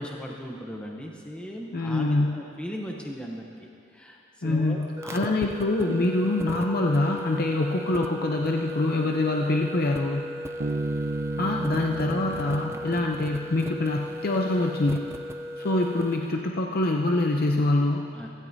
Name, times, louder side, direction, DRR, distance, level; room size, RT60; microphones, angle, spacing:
voice 1, 0.0-5.3 18.1-18.3, equal, 5° left, 0 dB, 0.7 m, -38 dB
voice 2, 1.7-2.4 4.4-10.2 11.4-15.1 15.6-18.1, left 2 dB, 45° left, 1 dB, 0.6 m, -25 dB
sound 1, 5.0-16.3, equal, 15° right, 0.3 m, -36 dB
Bass guitar, 10.6-14.1, right 2 dB, 60° right, 0.7 m, -34 dB
15.5 x 15.5 x 2.7 m, 2.6 s
head